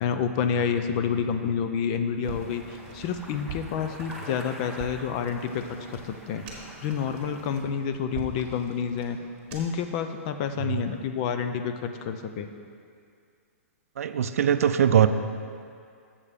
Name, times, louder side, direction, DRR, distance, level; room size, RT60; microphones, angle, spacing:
voice 1, 0.0-9.2 9.5-12.5, left 7 dB, 30° left, 8 dB, 0.4 m, -29 dB
sound 1, 2.2-7.6, right 1 dB, ahead, 0.7 m, -45 dB
sound 2, 2.2-9.9, right 4 dB, 35° right, 1.7 m, -43 dB
voice 2, 14.0-15.1, right 9 dB, 75° right, 10 dB, 0.4 m, -21 dB
7.2 x 6.5 x 5.1 m, 2.3 s
hypercardioid pair, 165°, 8 cm